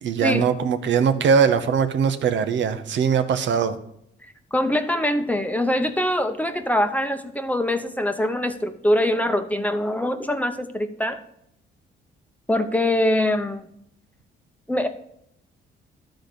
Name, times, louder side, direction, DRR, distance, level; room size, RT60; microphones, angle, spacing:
voice 1, 0.0-3.8, right 6 dB, 70° right, 9 dB, 0.9 m, -21 dB
voice 2, 4.5-11.2 12.5-13.6 14.7-14.9, left 1 dB, 5° left, 7 dB, 0.8 m, -23 dB
11.5 x 4.1 x 6.6 m, 0.75 s
cardioid pair, 90°, 20 cm